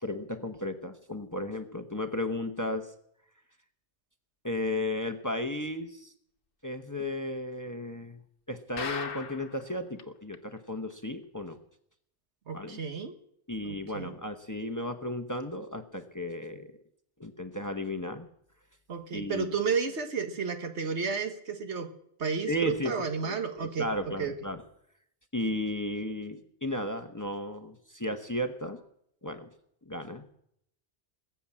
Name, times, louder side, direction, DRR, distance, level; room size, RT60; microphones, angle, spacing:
voice 1, 0.0-2.9 4.4-6.1 6.6-8.2 8.5-11.6 12.5-12.8 13.5-16.7 17.2-18.3 19.1-19.6 22.5-24.6 25.3-28.8 29.2-29.5 29.9-30.2, left 1 dB, 20° left, 7 dB, 0.9 m, -34 dB
sound 1, 8.8-9.6 10.0-10.1 10.3-10.4 10.9-11.0, left 6 dB, 55° left, 1.0 m, -37 dB
voice 2, 12.5-13.1 13.6-14.1 18.9-21.9 22.2-24.3, right 5 dB, 80° right, 7 dB, 1.6 m, -32 dB
20.5 x 7.3 x 8.6 m, 0.73 s
omnidirectional pair, 1.2 m